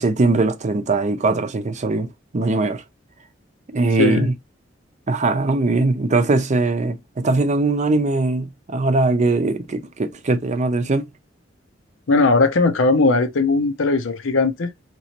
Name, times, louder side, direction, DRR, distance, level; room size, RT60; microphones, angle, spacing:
voice 1, 0.0-2.1 2.3-2.8 3.7-4.3 5.1-11.1, right 3 dB, 40° right, 0.5 m, -20 dB
voice 2, 4.0-4.3 12.1-14.7, left 3 dB, 85° left, 0.7 m, -18 dB
4.0 x 3.0 x 2.8 m
head